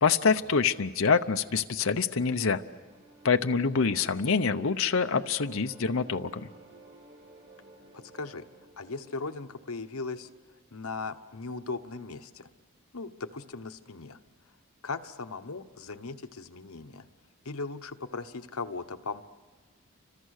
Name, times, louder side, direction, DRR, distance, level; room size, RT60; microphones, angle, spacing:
voice 1, 0.0-2.6 3.2-6.5, left 5 dB, 70° left, 7 dB, 0.8 m, -26 dB
sound 1, 1.7-10.7, right 3 dB, 55° right, 2.8 m, -54 dB
voice 2, 7.9-8.4 8.8-10.3 10.7-12.5 12.9-14.2 14.8-17.1 17.4-19.2, left 4 dB, 85° left, 8 dB, 1.1 m, -38 dB
30.0 x 25.5 x 6.6 m, 1.5 s
head